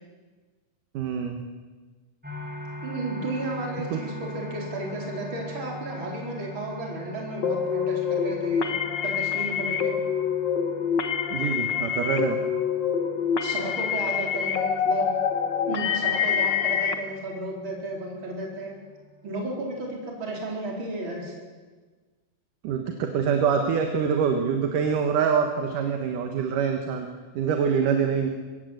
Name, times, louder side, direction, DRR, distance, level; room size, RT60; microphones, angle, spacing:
voice 1, 0.9-1.4 3.9-4.0 11.3-12.4 22.6-27.1 27.3-28.3, right 6 dB, 75° right, 4 dB, 3.0 m, -25 dB
sound 1, 2.2-20.0, equal, 5° right, 4.4 m, -42 dB
voice 2, 2.8-8.7 9.0-9.9 13.4-15.1 15.7-18.7 19.2-21.3, right 2 dB, 35° right, -1 dB, 4.9 m, -33 dB
sound 2, 7.4-16.9, left 7 dB, 55° left, 1.2 m, -26 dB
23.5 x 17.5 x 8.1 m, 1.4 s
omnidirectional pair, 3.8 m